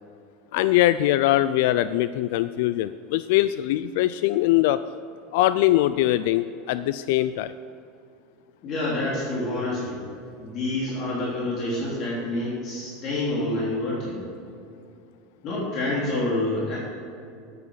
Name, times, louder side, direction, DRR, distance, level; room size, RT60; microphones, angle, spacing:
voice 1, 0.5-4.8 5.3-7.5, left 14 dB, 70° left, 14 dB, 0.3 m, -22 dB
voice 2, 8.6-10.0 10.4-14.2 15.4-16.8, left 2 dB, 50° left, -6 dB, 3.3 m, -27 dB
11.0 x 9.4 x 5.6 m, 2.5 s
supercardioid pair, 115°, 0 cm